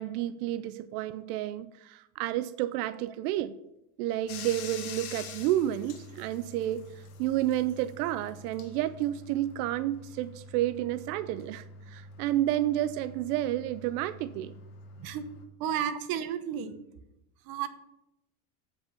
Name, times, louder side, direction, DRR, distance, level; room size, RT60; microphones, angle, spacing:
voice 1, 0.0-3.5 4.0-14.5, right 13 dB, 90° right, 13 dB, 0.6 m, -30 dB
Bathtub (filling or washing), 4.3-15.4, left 3 dB, 85° left, 1.5 m, -46 dB
voice 2, 15.6-16.8 17.4-17.7, right 9 dB, 50° right, 10 dB, 1.0 m, -32 dB
7.7 x 5.4 x 6.9 m, 0.88 s
cardioid pair, 145°, 44 cm